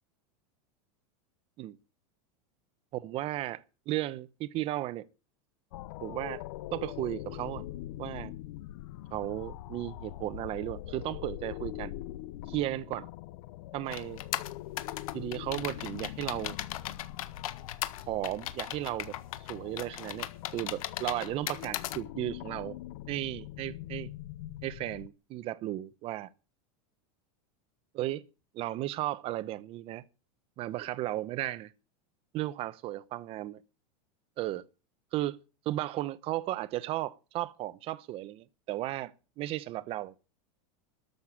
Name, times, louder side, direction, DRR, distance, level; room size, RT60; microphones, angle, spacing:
voice 1, 2.9-5.1 6.0-6.4 6.7-7.6 8.0-8.3 9.1-11.9 12.5-13.1 13.7-14.2 15.1-16.6 18.1-19.2 19.5-22.8 23.1-24.1 24.6-26.3 27.9-28.2 28.5-30.0 30.6-31.7 32.3-33.6 34.4-34.6 35.1-35.4 35.7-40.2, right 15 dB, 35° right, 0.8 m, -35 dB
sound 1, 5.7-25.1, left 14 dB, 60° left, 0.8 m, -43 dB
sound 2, 13.9-22.0, left 13 dB, 80° left, 1.6 m, -37 dB
13.5 x 6.6 x 9.7 m
supercardioid pair, 160°, 18 cm